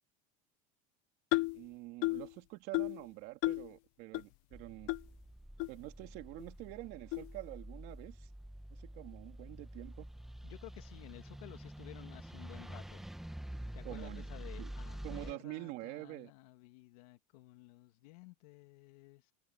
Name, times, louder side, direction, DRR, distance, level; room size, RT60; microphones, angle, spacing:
sound 1, 1.3-1.6 2.0-2.3 2.7-3.0 3.4-3.7 4.1-4.2 4.9-5.0 5.6-5.7 6.4-6.5 7.1-7.3, left 24 dB, 55° left, 0.6 m, -33 dB
voice 1, 1.5-4.9 5.7-8.3 8.7-10.1 13.8-14.3 14.6-14.7 15.0-16.3, right 20 dB, 55° right, 2.7 m, -46 dB
sound 2, 4.5-15.3, right 1 dB, ahead, 1.3 m, -47 dB
voice 2, 10.4-13.1 13.7-19.3, left 21 dB, 70° left, 2.5 m, -54 dB
supercardioid pair, 155°, 20 cm